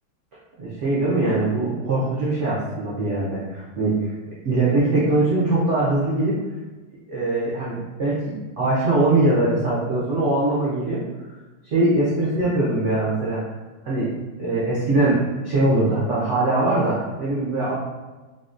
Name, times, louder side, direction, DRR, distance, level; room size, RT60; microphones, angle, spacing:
voice 1, 0.6-3.9 4.4-6.4 7.1-11.0 11.7-13.4 13.8-14.1 14.4-17.7, right 2 dB, 90° right, -7 dB, 0.6 m, -22 dB
3.8 x 2.1 x 2.4 m, 1.2 s
omnidirectional pair, 2.0 m